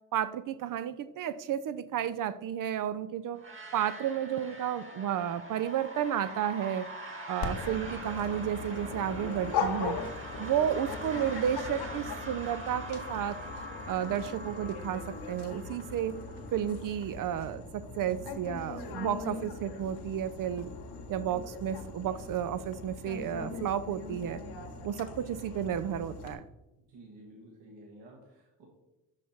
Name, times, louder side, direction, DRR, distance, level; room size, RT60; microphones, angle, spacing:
voice 1, 0.1-3.4 3.7-6.9 7.3-10.0 10.4-13.4 13.9-16.2 16.5-20.7 21.1-24.4 24.8-26.4, right 9 dB, 45° right, 13 dB, 0.4 m, -32 dB
sound 1, 3.4-17.1, right 1 dB, 25° right, 1.4 m, -44 dB
Dog, 7.4-26.3, left 4 dB, 55° left, 1.1 m, -40 dB
voice 2, 26.9-28.7, right 1 dB, 65° right, -2 dB, 1.5 m, -52 dB
5.6 x 4.9 x 4.2 m, 0.97 s
hypercardioid pair, 50°, 47 cm